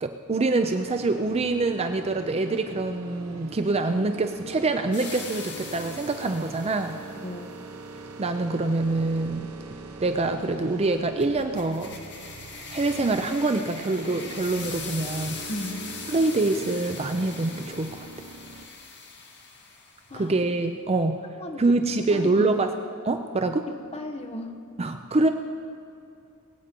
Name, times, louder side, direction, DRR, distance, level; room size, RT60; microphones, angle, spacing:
voice 1, 0.0-7.0 8.2-9.5 10.0-11.9 12.7-15.4 16.1-18.1 20.1-21.2 21.6-22.7 23.0-23.7 24.8-25.3, right 2 dB, 30° right, 7 dB, 0.5 m, -25 dB
sound 1, 0.5-18.7, right 3 dB, 75° right, 1.2 m, -43 dB
sound 2, 4.9-7.3 11.2-20.1, left 5 dB, 55° left, 1.9 m, -41 dB
voice 2, 15.5-15.9 20.1-20.3 20.9-21.8 22.1-22.6 23.7-24.6, left 1 dB, 30° left, 3 dB, 1.1 m, -36 dB
21.0 x 8.9 x 5.2 m, 2.7 s
head